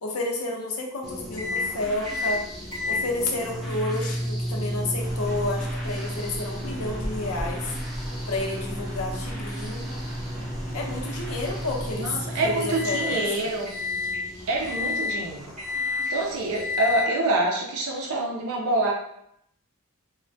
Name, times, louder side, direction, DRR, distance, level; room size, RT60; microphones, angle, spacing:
voice 1, 0.0-2.4 2.9-7.7 8.2-9.8 10.7-13.5, left 2 dB, 80° left, 0 dB, 0.6 m, -30 dB
sound 1, 1.0-17.0, left 1 dB, ahead, 0.4 m, -42 dB
sound 2, 1.4-1.6 2.0-2.3 2.7-13.2 13.6-14.2 14.6-15.2 15.6-16.1 16.5-17.1, left 2 dB, 30° right, 1.0 m, -31 dB
sound 3, 5.0-12.1, equal, 60° right, 1.0 m, -38 dB
voice 2, 12.0-13.7 14.3-15.5 16.1-18.9, right 2 dB, 75° right, 0 dB, 0.5 m, -26 dB
3.2 x 2.1 x 2.6 m, 0.74 s
head